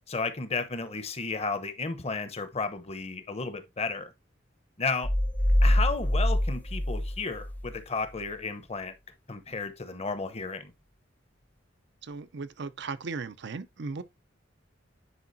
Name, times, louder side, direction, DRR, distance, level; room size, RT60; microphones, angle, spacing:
voice 1, 0.1-4.1 4.8-5.1 5.6-8.9 9.3-10.7, left 4 dB, 35° left, 0.9 m, -33 dB
sound 1, 5.0-7.8, left 1 dB, 10° left, 0.5 m, -25 dB
voice 2, 12.0-14.0, right 4 dB, 60° right, 0.6 m, -37 dB
9.8 x 4.8 x 2.7 m
head